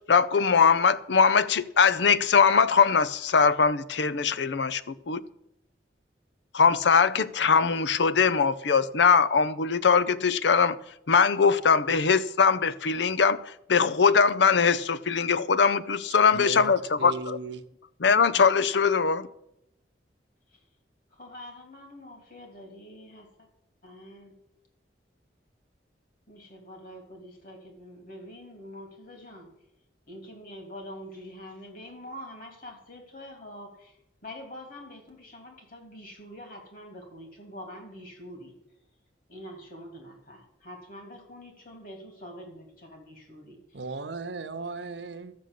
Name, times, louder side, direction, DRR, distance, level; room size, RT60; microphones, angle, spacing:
voice 1, 0.1-4.8 5.1-5.2 6.5-10.8 11.1-17.4 18.0-19.3, left 5 dB, 75° left, 0.6 m, -21 dB
voice 2, 16.3-17.7 43.7-45.3, right 3 dB, 75° right, 0.9 m, -36 dB
voice 3, 21.1-23.5 23.8-24.3 26.3-29.5 30.1-38.5 39.3-43.8, equal, 50° left, 3.2 m, -45 dB
13.0 x 6.4 x 8.3 m
head